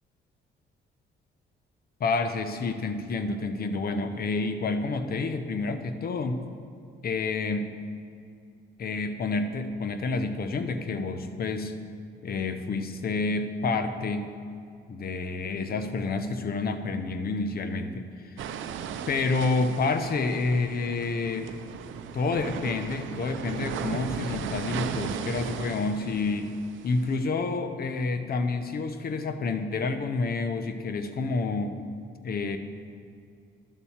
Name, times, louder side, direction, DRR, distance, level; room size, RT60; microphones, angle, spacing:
voice 1, 2.0-6.4 7.0-7.8 8.8-11.7 12.2-14.3 14.9-18.4 19.1-21.5 22.1-26.6 26.8-31.7 32.2-32.6, left 3 dB, 50° left, 8 dB, 0.8 m, -29 dB
sound 1, 18.4-27.2, right 8 dB, 75° right, 0.6 m, -36 dB
11.0 x 4.1 x 7.2 m, 2.4 s
cardioid pair, 90°, 20 cm